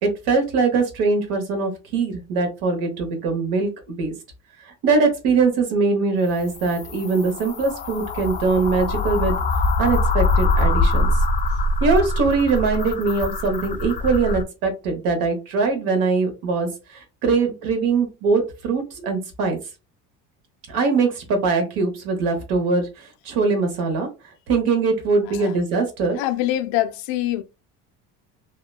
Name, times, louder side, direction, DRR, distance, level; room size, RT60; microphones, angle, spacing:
voice 1, 0.0-4.1 4.8-9.4 9.8-11.1 11.8-19.6 20.7-24.1 24.5-26.2, right 4 dB, 75° right, 1.1 m, -22 dB
sound 1, 6.3-14.4, left 2 dB, 25° left, 0.4 m, -23 dB
voice 2, 26.1-27.4, left 14 dB, 80° left, 0.5 m, -24 dB
2.8 x 2.1 x 2.2 m
supercardioid pair, 105°, 35 cm